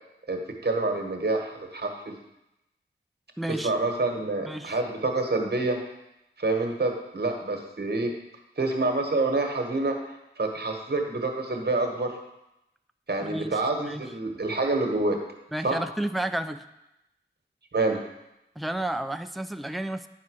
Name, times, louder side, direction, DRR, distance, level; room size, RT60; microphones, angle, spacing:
voice 1, 0.3-2.2 3.5-5.8 6.4-8.1 8.6-12.1 13.1-15.2 15.6-15.8 17.7-18.0, right 2 dB, 60° right, 3 dB, 1.4 m, -27 dB
voice 2, 3.4-3.7 4.4-4.8 13.2-14.1 15.5-16.6 18.6-20.1, right 1 dB, ahead, 8 dB, 0.4 m, -32 dB
9.7 x 4.2 x 6.3 m, 0.90 s
wide cardioid pair, 55°, 19 cm